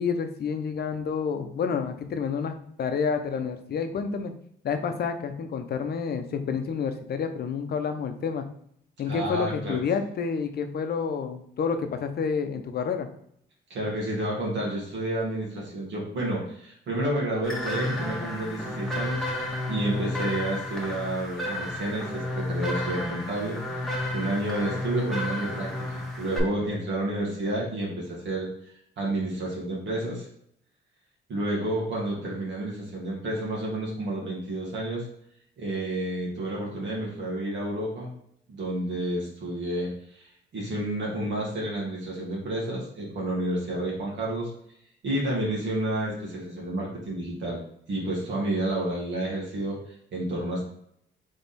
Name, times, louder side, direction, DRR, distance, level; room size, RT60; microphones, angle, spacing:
voice 1, 0.0-4.3 4.6-8.5 9.0-13.1, left 6 dB, 55° left, 7 dB, 0.7 m, -29 dB
voice 2, 9.0-9.8 13.7-28.5 29.0-30.3 31.3-35.0 35.6-38.1 38.5-44.5 45.0-47.6 47.9-49.8 50.1-50.6, right 1 dB, 65° right, -4 dB, 1.7 m, -30 dB
sound 1, 17.4-26.4, left 1 dB, ahead, 1.4 m, -32 dB
3.6 x 3.5 x 4.1 m, 0.69 s
cardioid pair, 90°, 20 cm